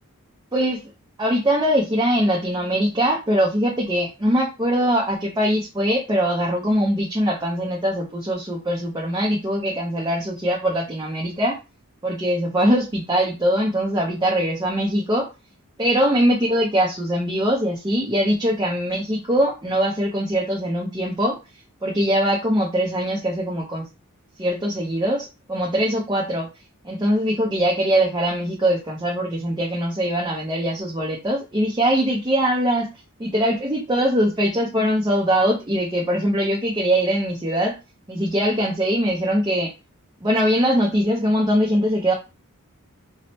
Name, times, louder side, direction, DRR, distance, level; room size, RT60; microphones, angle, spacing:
voice 1, 1.2-11.6 12.0-15.3 15.8-21.4 21.8-23.8 24.4-26.5 26.8-32.9 33.2-37.8 38.1-39.7 40.2-42.1, equal, 20° right, -3 dB, 0.8 m, -22 dB
4.7 x 2.1 x 2.8 m, 0.26 s
head